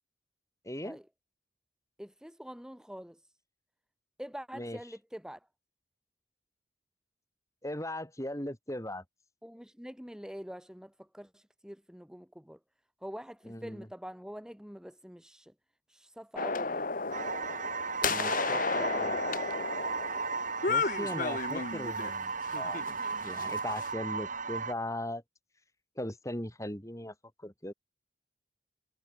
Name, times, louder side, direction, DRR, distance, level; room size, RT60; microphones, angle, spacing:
voice 1, 0.6-1.0 4.5-4.8 7.6-9.0 13.4-13.9 18.1-19.2 20.7-22.9 23.2-25.2 26.0-27.1 27.4-27.7, left 1 dB, 15° left, 4.9 m, -38 dB
voice 2, 2.0-3.3 4.2-5.5 9.4-12.6 13.0-15.5 15.9-16.9 18.0-19.4, equal, 5° right, 1.6 m, -45 dB
sound 1, 16.4-22.1 22.5-23.9, left 4 dB, 45° left, 2.0 m, -33 dB
sound 2, 17.1-24.7, right 5 dB, 45° right, 2.6 m, -36 dB
head